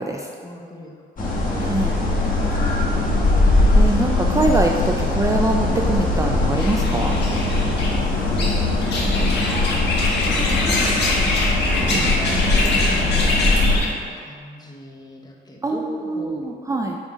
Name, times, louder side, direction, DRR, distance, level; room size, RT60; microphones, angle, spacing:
voice 1, 0.4-1.3 2.1-3.2 10.5-11.2 11.7-13.9 14.2-16.5, left 1 dB, 20° left, 0 dB, 1.1 m, -37 dB
sound 1, 1.2-13.8, left 2 dB, 45° left, 1.7 m, -20 dB
voice 2, 1.6-1.9 3.8-7.2 11.9-12.1 15.6-17.0, right 2 dB, 15° right, 1 dB, 0.4 m, -24 dB
sound 2, 6.6-13.9, left 2 dB, 60° left, 1.5 m, -25 dB
7.3 x 3.8 x 5.0 m, 2.2 s
cardioid pair, 90°, 20 cm